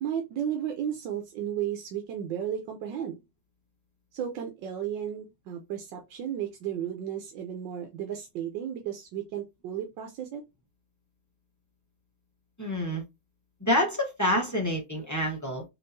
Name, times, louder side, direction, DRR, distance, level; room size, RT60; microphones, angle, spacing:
voice 1, 0.0-3.2 4.1-10.4, right 9 dB, 85° right, 1.5 m, -34 dB
voice 2, 12.6-13.0 13.7-15.6, left 1 dB, 15° left, 0.6 m, -27 dB
4.3 x 3.0 x 2.6 m
omnidirectional pair, 1.9 m